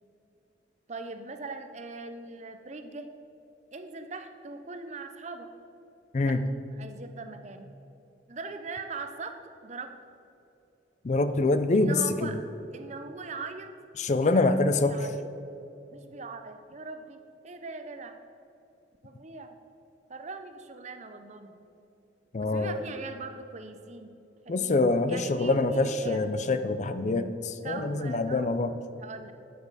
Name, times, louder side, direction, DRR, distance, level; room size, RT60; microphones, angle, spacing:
voice 1, 0.9-3.1 3.7-5.5 6.2-6.4 6.8-7.7 8.3-9.3 9.6-9.9 11.7-12.4 12.7-13.7 14.3-15.2 15.9-18.2 19.0-19.6 20.1-21.6 22.4-24.1 24.4-24.8 25.1-26.2 27.6-28.5 29.0-29.3, right 3 dB, 35° right, 7 dB, 0.6 m, -41 dB
voice 2, 11.0-12.3 14.0-15.0 22.3-22.8 24.5-28.7, left 2 dB, 40° left, 11 dB, 0.4 m, -25 dB
10.5 x 5.3 x 4.8 m, 2.8 s
head